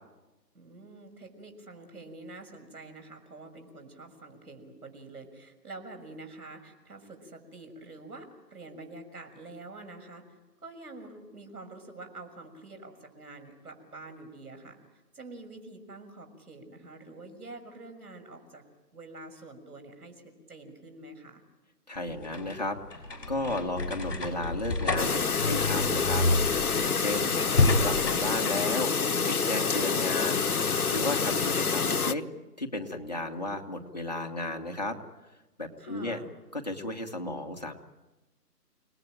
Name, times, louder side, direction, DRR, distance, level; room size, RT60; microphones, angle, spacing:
voice 1, 0.5-14.8 15.1-18.6 18.9-21.4 27.2-27.7 35.8-36.3, right 2 dB, 65° right, 5 dB, 6.2 m, -47 dB
voice 2, 21.9-27.3 27.8-28.9 29.3-32.2 32.6-35.0 35.6-36.2 36.5-37.7, left 2 dB, 25° left, 1 dB, 1.4 m, -34 dB
sound 1, 22.0-28.7, left 2 dB, 50° left, 6.3 m, -29 dB
Chirp tweet, 25.0-32.1, left 5 dB, 65° left, 1.0 m, -27 dB
29.5 x 19.0 x 9.0 m, 1.1 s
figure-of-eight pair, 175°, 48 cm